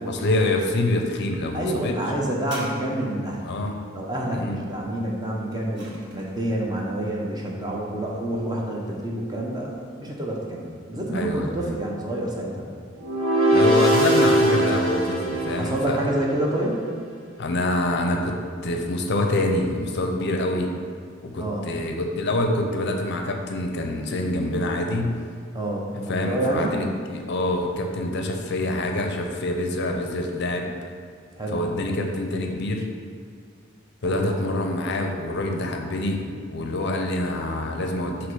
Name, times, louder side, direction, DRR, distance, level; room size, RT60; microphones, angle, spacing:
voice 1, 0.1-2.0 3.5-3.7 4.3-4.6 11.1-11.8 13.5-16.1 17.4-18.3 18.6-20.7 21.2-25.2 25.9-30.7 31.5-32.9 34.0-38.3, left 1 dB, 55° left, 3 dB, 0.5 m, -26 dB
voice 2, 1.5-3.5 3.9-12.7 15.5-16.9 21.4-21.7 25.5-26.8 31.4-31.6 34.0-34.3, right 1 dB, 20° right, -2 dB, 0.8 m, -28 dB
sound 1, 2.4-3.5 5.2-6.5 7.3-7.4, right 1 dB, 60° right, 1.3 m, -42 dB
sound 2, 13.0-16.3, right 1 dB, 85° right, 1.0 m, -21 dB
6.2 x 3.0 x 5.4 m, 2.3 s
head